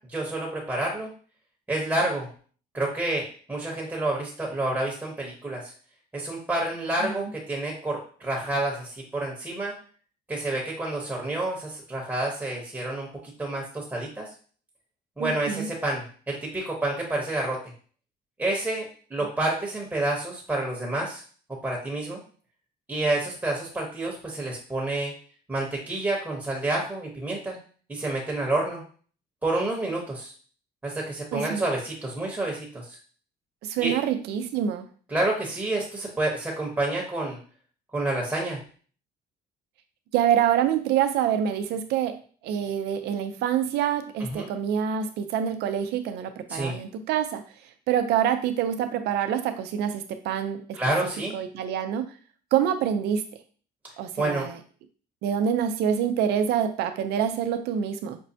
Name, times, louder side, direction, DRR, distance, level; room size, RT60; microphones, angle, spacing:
voice 1, 0.1-1.1 1.7-2.3 2.7-5.7 6.1-9.7 10.3-14.3 15.2-17.6 18.4-21.2 21.6-22.2 22.9-25.1 25.5-27.6 27.9-28.8 29.4-30.3 30.8-33.0 33.8-33.9 35.1-37.4 37.9-38.6 44.2-44.5 46.5-46.8 50.7-51.3 54.2-54.5, right 2 dB, 10° right, -2 dB, 0.9 m, -29 dB
voice 2, 15.2-15.7 31.3-31.6 33.6-34.9 40.1-47.4 47.9-50.8 51.3-52.1 52.5-53.2 54.0-54.6 55.2-58.2, right 9 dB, 80° right, 9 dB, 0.5 m, -26 dB
5.2 x 2.1 x 2.7 m, 0.42 s
cardioid pair, 110°, 17 cm